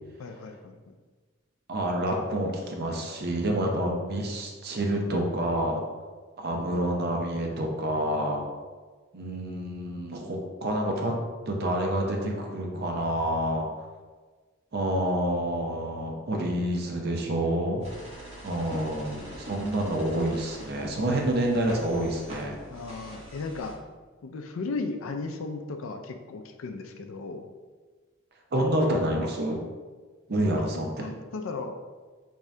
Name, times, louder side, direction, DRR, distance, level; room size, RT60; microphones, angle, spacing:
voice 1, 0.2-0.8 22.7-23.7 24.2-27.4 30.5-31.7, left 3 dB, 70° left, 5 dB, 0.4 m, -36 dB
voice 2, 1.7-5.8 6.4-8.4 9.1-11.1 11.5-13.7 14.7-17.8 18.4-22.6 28.5-29.6 30.3-31.1, right 1 dB, 50° right, 1 dB, 0.6 m, -28 dB
sound 1, 17.8-23.7, right 1 dB, 30° right, 1.0 m, -43 dB
3.5 x 2.7 x 3.2 m, 1.4 s
head